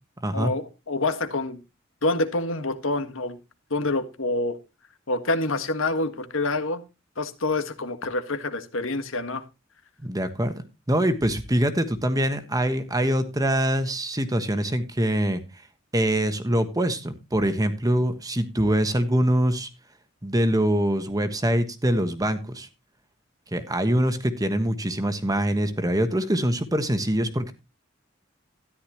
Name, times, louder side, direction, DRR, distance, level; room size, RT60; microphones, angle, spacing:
voice 1, 0.3-1.6 2.0-3.4 3.7-4.6 5.1-6.8 7.2-9.4, left 2 dB, 85° left, 8 dB, 1.7 m, -27 dB
voice 2, 10.0-10.5 10.9-15.4 15.9-19.7 20.2-22.7 23.5-27.5, right 1 dB, 20° right, 9 dB, 1.3 m, -24 dB
13.5 x 11.0 x 3.0 m, 0.27 s
head